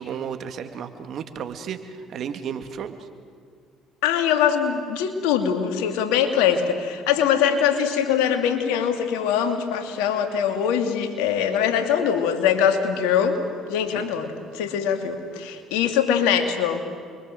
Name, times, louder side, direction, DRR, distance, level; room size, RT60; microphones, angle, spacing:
voice 1, 0.0-3.1 13.9-14.1, right 7 dB, 60° right, 8 dB, 2.1 m, -33 dB
voice 2, 4.0-13.4 13.7-14.3 14.5-16.8, left 8 dB, 80° left, 6 dB, 2.4 m, -22 dB
28.5 x 23.0 x 7.7 m, 2.2 s
hypercardioid pair, 65°, 0 cm